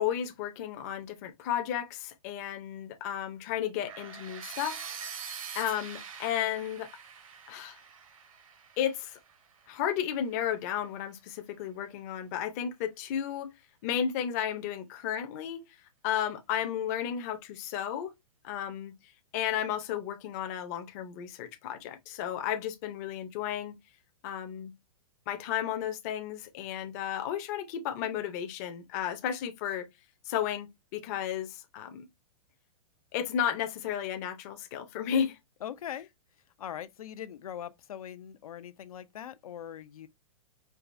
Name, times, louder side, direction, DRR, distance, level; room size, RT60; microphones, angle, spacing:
voice 1, 0.0-5.1 5.5-6.9 7.5-7.8 8.8-9.2 9.7-13.5 13.8-15.7 16.0-18.1 18.4-18.9 19.3-23.8 24.2-24.7 25.3-29.9 30.3-32.1 33.1-35.4, left 9 dB, 30° left, 0.6 m, -33 dB
sound 1, 3.9-9.8, right 7 dB, 70° right, 1.1 m, -44 dB
voice 2, 35.6-36.1 36.6-40.1, left 10 dB, 80° left, 0.6 m, -41 dB
4.6 x 2.3 x 2.5 m
hypercardioid pair, 165°, 18 cm